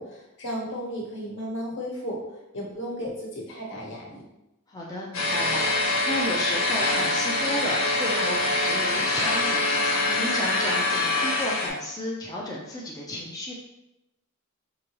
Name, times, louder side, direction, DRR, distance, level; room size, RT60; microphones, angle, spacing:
voice 1, 0.0-2.2 2.5-4.2, equal, 60° left, -3 dB, 1.2 m, -34 dB
voice 2, 4.7-5.6 6.0-13.5, left 1 dB, 15° left, -4 dB, 0.5 m, -33 dB
sound 1, 5.1-11.7, left 2 dB, 85° left, 1.5 m, -24 dB
4.9 x 2.9 x 3.0 m, 0.93 s
head